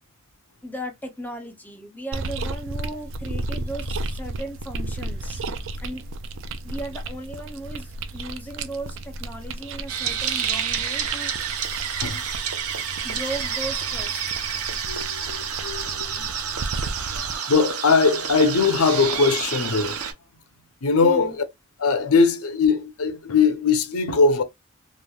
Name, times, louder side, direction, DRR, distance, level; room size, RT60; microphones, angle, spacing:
voice 1, 0.6-5.4 5.8-6.0 6.6-11.6 13.0-14.2 21.0-21.4, right 1 dB, 10° left, 0.6 m, -36 dB
sound 1, 2.1-17.4, right 2 dB, 60° right, 0.4 m, -34 dB
sound 2, 9.9-20.1, right 7 dB, 90° right, 0.8 m, -29 dB
voice 2, 14.8-16.5 17.1-20.0 20.8-21.4 21.8-24.4, left 4 dB, 80° left, 0.6 m, -21 dB
3.1 x 2.5 x 2.2 m
head